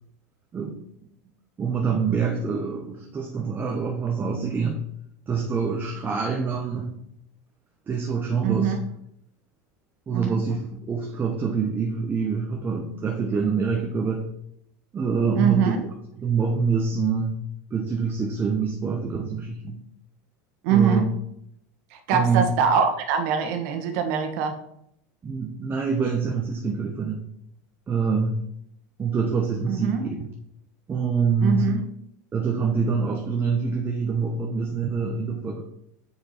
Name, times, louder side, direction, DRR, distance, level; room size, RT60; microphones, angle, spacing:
voice 1, 1.6-4.8 5.3-6.9 7.9-8.8 10.1-14.3 14.9-15.7 16.2-17.4 17.7-19.8 20.7-21.0 22.1-22.5 25.2-27.3 27.9-28.4 29.0-30.3 30.9-31.7 32.3-35.6, right 5 dB, 20° right, 2 dB, 0.9 m, -25 dB
voice 2, 8.4-8.8 10.1-10.4 15.3-15.8 20.6-21.1 21.9-24.5 29.7-30.1 31.4-31.8, right 7 dB, 65° right, 5 dB, 1.5 m, -23 dB
7.0 x 6.3 x 4.3 m, 0.75 s
supercardioid pair, 130°, 9 cm